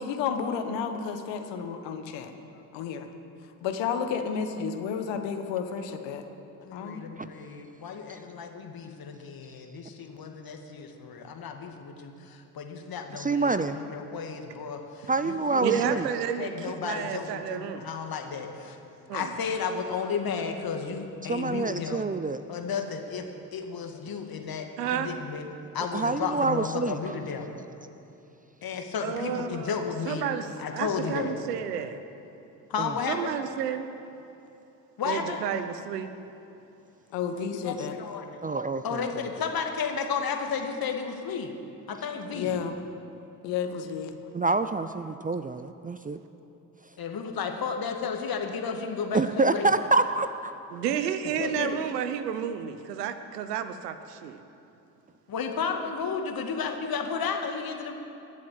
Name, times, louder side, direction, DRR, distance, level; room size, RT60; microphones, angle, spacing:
voice 1, 0.0-2.3 2.7-3.1 3.6-6.2 6.7-7.0 37.1-38.0 42.3-42.7 43.4-44.2, left 6 dB, 70° left, 6 dB, 1.5 m, -31 dB
voice 2, 6.6-16.0 16.4-18.8 19.1-22.0 22.5-23.2 23.5-25.5 25.7-27.5 28.6-30.3 30.6-31.3 32.7-33.3 35.0-35.4 37.3-38.4 38.8-41.5 41.9-42.5 47.0-49.8 51.3-51.8 55.3-57.9, left 6 dB, 50° left, 4 dB, 2.1 m, -33 dB
voice 3, 13.1-13.8 15.1-16.1 21.3-22.4 25.9-27.0 32.8-32.9 38.4-39.0 44.3-46.2 49.1-50.5, right 3 dB, 20° right, 11 dB, 0.6 m, -26 dB
voice 4, 15.6-17.9 19.1-19.3 24.8-25.1 29.0-29.8 30.1-32.0 33.1-33.9 35.1-36.1 50.7-54.4, right 8 dB, 90° right, 10 dB, 0.9 m, -31 dB
21.0 x 7.6 x 7.6 m, 2.9 s
hypercardioid pair, 55°, 46 cm